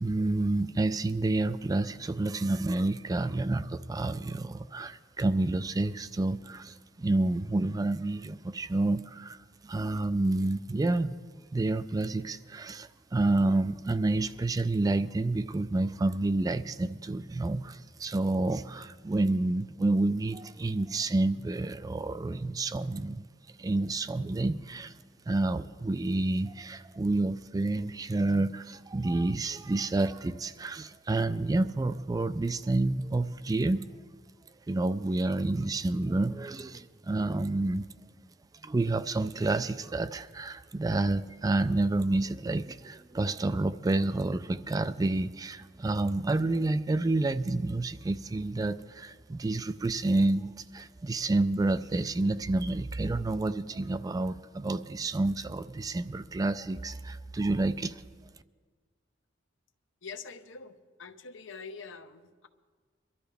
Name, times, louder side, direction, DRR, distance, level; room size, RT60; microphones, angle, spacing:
voice 1, 0.0-9.4 9.6-11.2 11.5-23.2 23.6-24.9 25.3-33.9 34.7-37.9 38.6-58.0, right 2 dB, 20° right, 13 dB, 0.3 m, -29 dB
voice 2, 60.0-62.5, left 5 dB, 80° left, 9 dB, 0.8 m, -45 dB
23.0 x 12.5 x 3.4 m, 1.5 s
head